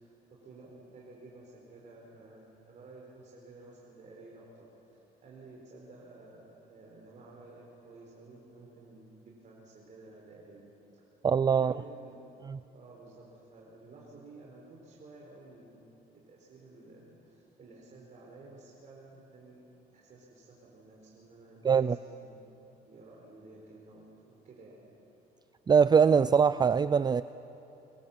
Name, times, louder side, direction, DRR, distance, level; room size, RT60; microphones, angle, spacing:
voice 1, 0.0-10.6 11.5-12.2 12.7-15.9 16.3-19.6 19.9-22.6 22.8-24.8, right 2 dB, 45° right, -2 dB, 4.8 m, -53 dB
voice 2, 11.2-11.7 21.6-22.0 25.7-27.2, right 6 dB, 25° right, 14 dB, 0.4 m, -22 dB
24.5 x 23.0 x 7.6 m, 2.9 s
cardioid pair, 110°, 17 cm